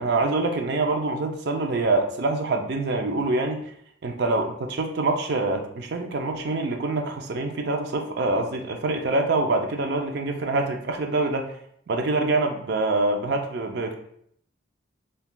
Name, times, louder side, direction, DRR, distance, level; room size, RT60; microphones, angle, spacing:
voice 1, 0.0-3.6 4.0-11.5 11.9-13.9, right 2 dB, 60° right, 4 dB, 0.4 m, -25 dB
5.6 x 2.2 x 2.2 m, 0.68 s
head